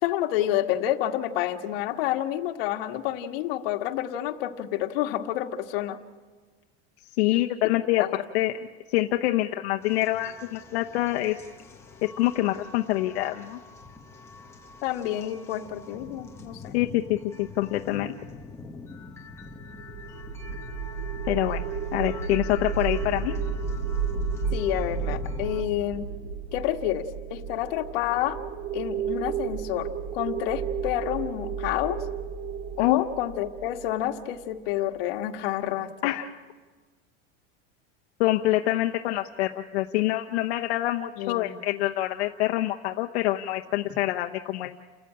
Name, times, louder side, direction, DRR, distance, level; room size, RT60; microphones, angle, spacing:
voice 1, 0.0-6.0 8.0-8.1 14.8-16.8 24.5-26.1 26.5-28.4 28.7-32.0 32.8-36.1 41.2-41.5, left 12 dB, 60° left, 4 dB, 1.7 m, -29 dB
voice 2, 7.2-8.0 8.3-8.5 8.9-11.4 12.0-13.6 16.7-18.1 21.3-21.6 21.9-23.3 32.8-33.0 36.0-36.3 38.2-44.8, left 16 dB, 85° left, 3 dB, 0.9 m, -26 dB
sound 1, 9.8-25.6, left 4 dB, 10° left, 1.1 m, -45 dB
sound 2, 19.5-34.7, right 6 dB, 45° right, 2.8 m, -32 dB
29.0 x 14.0 x 8.8 m, 1.4 s
supercardioid pair, 175°, 32 cm